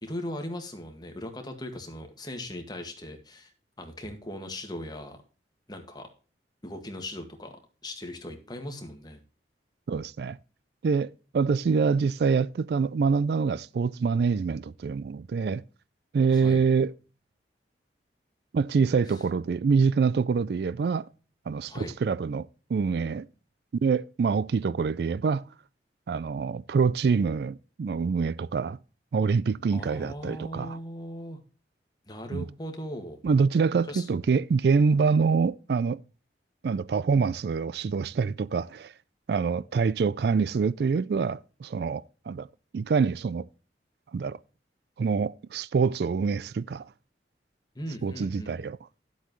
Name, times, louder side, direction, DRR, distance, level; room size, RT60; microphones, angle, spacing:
voice 1, 0.0-3.5 3.8-5.2 5.7-6.1 6.6-7.5 7.8-9.2 16.3-16.6 19.1-19.2 21.7-21.9 29.7-31.4 32.1-33.2 33.9-34.2 47.8-48.6, left 1 dB, 25° left, 1.8 m, -39 dB
voice 2, 9.9-10.4 10.8-15.6 16.1-16.9 18.5-21.1 21.5-23.3 23.8-25.4 26.1-28.8 29.1-30.8 32.3-32.4 33.2-36.0 36.6-38.9 39.3-42.5 42.7-43.5 44.1-44.4 45.0-46.9 48.0-48.8, right 5 dB, 65° right, 0.3 m, -25 dB
11.5 x 8.2 x 3.1 m
head